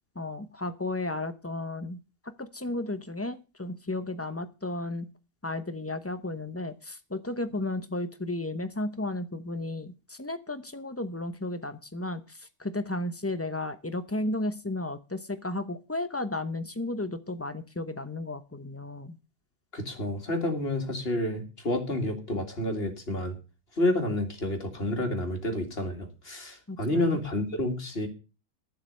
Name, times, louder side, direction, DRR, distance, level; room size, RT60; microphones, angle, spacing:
voice 1, 0.2-2.0 2.4-5.1 5.4-19.2 26.7-27.2, left 2 dB, 15° left, 10 dB, 0.4 m, -34 dB
voice 2, 19.7-23.4 23.8-28.1, left 1 dB, 35° left, 4 dB, 2.5 m, -29 dB
12.0 x 7.7 x 6.5 m, 0.32 s
omnidirectional pair, 1.8 m